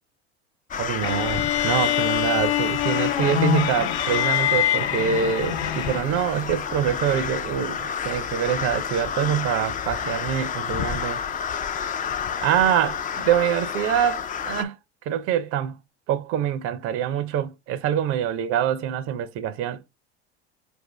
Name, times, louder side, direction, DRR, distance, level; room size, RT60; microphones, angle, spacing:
sound 1, 0.7-14.6, left 7 dB, 25° left, 0.4 m, -30 dB
voice 1, 0.8-11.2 12.4-14.8 15.0-15.8 16.1-19.8, right 9 dB, 45° right, 0.5 m, -25 dB
sound 2, 1.0-6.3, left 12 dB, 80° left, 0.6 m, -24 dB
4.6 x 2.6 x 3.2 m
hypercardioid pair, 80°, 33 cm